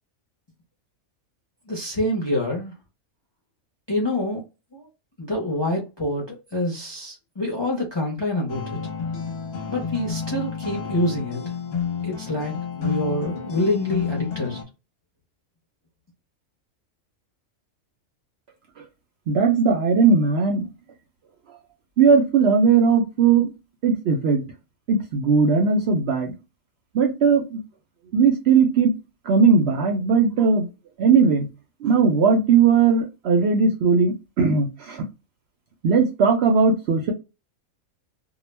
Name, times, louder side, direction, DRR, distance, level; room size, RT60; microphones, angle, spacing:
voice 1, 1.7-2.7 3.9-4.4 4.7-4.9 5.2-8.8 9.7-11.4 12.0-14.6, left 1 dB, 30° left, 0.5 m, -26 dB
sound 1, 8.5-14.6, left 6 dB, 55° left, 0.8 m, -30 dB
voice 2, 19.3-20.7 22.0-23.5 23.8-24.4 24.9-26.3 26.9-27.6 28.1-28.9 29.3-30.7 31.0-31.5 31.8-35.1 35.8-37.1, right 5 dB, 65° right, 0.7 m, -18 dB
2.3 x 2.0 x 3.2 m
omnidirectional pair, 1.4 m